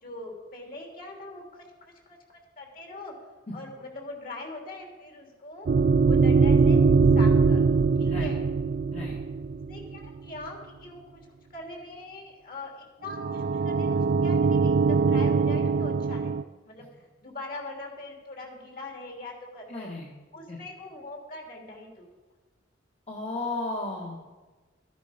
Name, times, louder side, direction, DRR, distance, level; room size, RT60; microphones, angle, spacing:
voice 1, 0.0-1.6 2.1-2.2 2.6-3.1 3.5-5.7 6.1-6.9 7.1-8.4 9.7-11.2 11.5-16.4 16.6-16.9 17.2-19.9 20.3-22.0, left 2 dB, 50° left, 1 dB, 3.1 m, -41 dB
sound 1, 5.7-10.1 13.1-16.4, right 4 dB, 50° right, 0.3 m, -22 dB
voice 2, 8.0-8.4 8.9-9.2 19.7-20.1 20.5-20.6 23.1-24.3, left 2 dB, 35° left, -4 dB, 1.7 m, -34 dB
14.0 x 10.5 x 5.2 m, 1.3 s
head